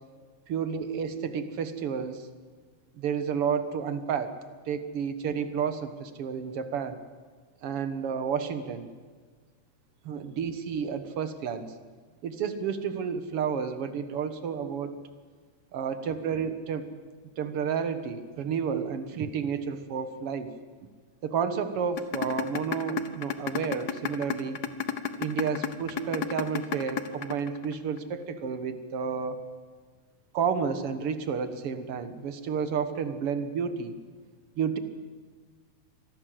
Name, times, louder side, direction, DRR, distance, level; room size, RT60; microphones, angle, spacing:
voice 1, 0.5-2.3 3.0-4.4 4.7-7.0 7.6-8.9 10.0-11.7 12.2-15.0 15.7-16.9 17.4-20.5 21.2-24.6 25.2-29.4 30.3-34.0 34.6-34.8, right 6 dB, 55° right, 10 dB, 2.1 m, -31 dB
sound 1, 22.0-28.0, left 9 dB, 70° left, 0.9 m, -30 dB
25.5 x 18.5 x 7.7 m, 1.5 s
omnidirectional pair, 3.5 m